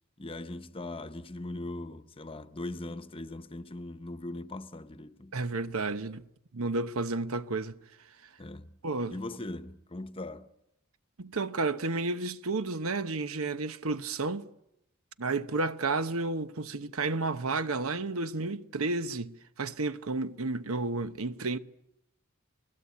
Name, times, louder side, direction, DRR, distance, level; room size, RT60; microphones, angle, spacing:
voice 1, 0.2-5.3 8.4-8.7 9.1-10.5, left 2 dB, 25° left, 0.9 m, -40 dB
voice 2, 5.3-6.3 6.5-7.8 8.8-9.1 11.2-14.5 15.2-21.6, right 3 dB, 85° right, 1.0 m, -31 dB
28.5 x 19.5 x 8.4 m
head